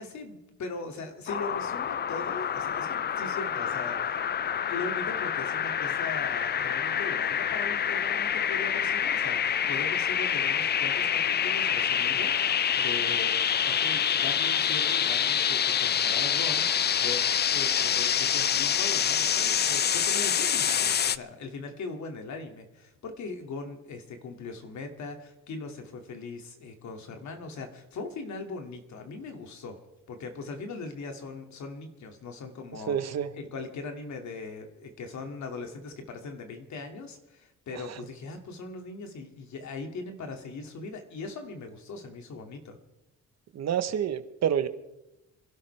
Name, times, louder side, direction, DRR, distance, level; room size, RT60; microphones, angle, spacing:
voice 1, 0.0-4.2 4.7-29.8 30.1-42.8, left 3 dB, 65° left, 4 dB, 2.4 m, -40 dB
sound 1, 1.3-21.2, left 8 dB, 35° left, 0.4 m, -27 dB
voice 2, 32.9-33.3 43.5-44.7, right 9 dB, 60° right, 11 dB, 1.1 m, -28 dB
26.5 x 12.5 x 3.4 m, 0.95 s
cardioid pair, 90°, 30 cm